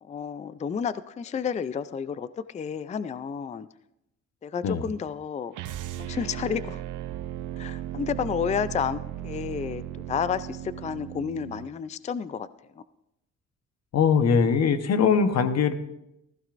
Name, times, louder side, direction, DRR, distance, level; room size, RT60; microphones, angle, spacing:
voice 1, 0.0-3.7 4.4-5.5 6.0-6.8 7.6-9.8 10.1-12.5 12.8-12.9, left 7 dB, 25° left, 15 dB, 0.4 m, -31 dB
sound 1, 5.5-11.7, right 13 dB, 80° right, 0.6 m, -36 dB
voice 2, 13.9-15.7, left 6 dB, 60° left, 9 dB, 1.1 m, -21 dB
15.5 x 15.0 x 2.6 m, 0.86 s
cardioid pair, 90°, 30 cm